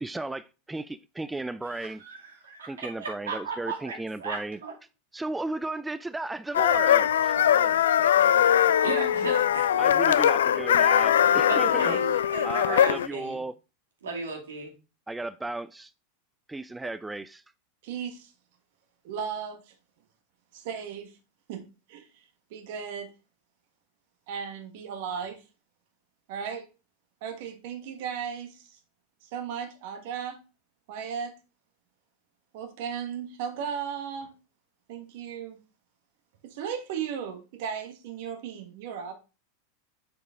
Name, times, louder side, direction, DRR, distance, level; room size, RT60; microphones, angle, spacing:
voice 1, 0.0-2.0 2.6-4.6 5.1-8.9 9.8-12.0 12.4-13.5 15.1-15.9 16.5-17.4, right 2 dB, 10° right, 0.3 m, -35 dB
voice 2, 1.7-4.7 8.8-9.8 11.5-13.4 14.0-14.7, right 4 dB, 85° right, 2.3 m, -36 dB
sound 1, 6.5-13.1, left 10 dB, 80° left, 0.3 m, -21 dB
voice 3, 17.8-18.3 19.0-19.7 20.5-21.1 21.5-21.6 21.9-22.2 22.5-23.1 24.3-25.4 26.3-26.7 27.2-28.8 29.2-30.4 30.9-31.3 32.5-34.3 34.9-35.6 36.4-39.1, right 7 dB, 60° right, 1.3 m, -36 dB
6.5 x 4.9 x 3.6 m
hypercardioid pair, 100°, 0 cm